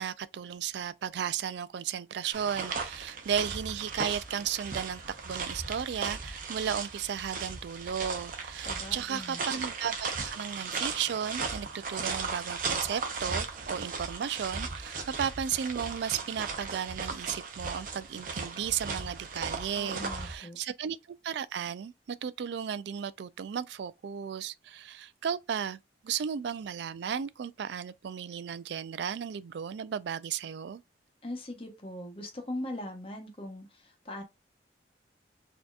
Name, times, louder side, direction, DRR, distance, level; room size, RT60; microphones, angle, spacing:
voice 1, 0.0-21.0 21.2-30.8, right 8 dB, 65° right, 0.3 m, -34 dB
sound 1, 2.3-20.4, right 4 dB, 45° right, 0.7 m, -37 dB
voice 2, 8.6-9.4 19.8-20.6 31.2-34.2, left 1 dB, 30° left, 1.0 m, -40 dB
4.2 x 2.8 x 2.4 m
head